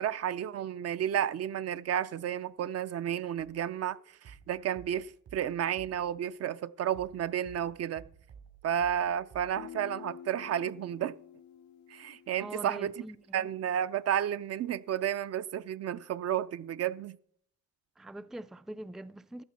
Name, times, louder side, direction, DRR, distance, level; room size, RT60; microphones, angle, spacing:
voice 1, 0.0-8.0 8.6-11.2 11.9-12.9 13.3-17.2, right 10 dB, 55° right, 0.6 m, -32 dB
sound 1, 3.4-6.5 6.9-9.6, right 6 dB, 75° right, 3.2 m, -55 dB
Guitar, 9.6-13.2, left 9 dB, 70° left, 0.7 m, -49 dB
voice 2, 12.4-13.4 18.0-19.4, right 1 dB, ahead, 0.4 m, -43 dB
14.5 x 11.5 x 4.3 m
cardioid pair, 90°, 30 cm